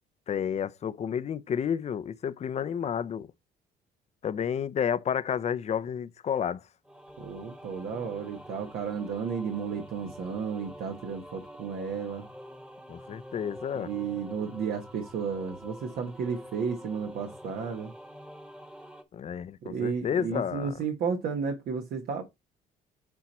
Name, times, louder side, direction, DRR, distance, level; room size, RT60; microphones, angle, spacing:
voice 1, 0.3-3.3 4.2-6.6 12.9-13.9 19.1-20.7, left 8 dB, 40° left, 0.6 m, -31 dB
sound 1, 6.8-19.0, equal, 5° right, 1.3 m, -46 dB
voice 2, 7.2-12.2 13.7-17.9 19.6-22.2, right 6 dB, 65° right, 1.6 m, -33 dB
8.5 x 4.6 x 4.3 m
cardioid pair, 110°, 17 cm